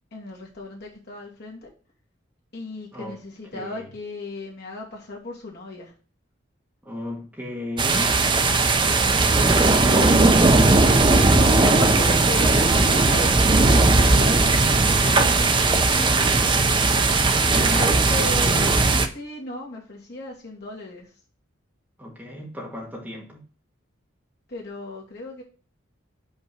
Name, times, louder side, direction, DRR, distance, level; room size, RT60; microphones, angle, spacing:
voice 1, 0.1-1.7 2.5-5.9 9.5-10.1 11.5-15.9 17.5-18.8 19.1-21.1 24.5-25.4, left 2 dB, 55° left, 2.4 m, -35 dB
voice 2, 3.5-3.9 6.8-8.2 9.3-10.3 15.8-16.8 17.5-18.0 22.0-23.4, left 1 dB, 10° right, 2.0 m, -35 dB
sound 1, 7.8-19.1, right 3 dB, 25° right, 0.6 m, -18 dB
5.6 x 4.5 x 6.1 m
head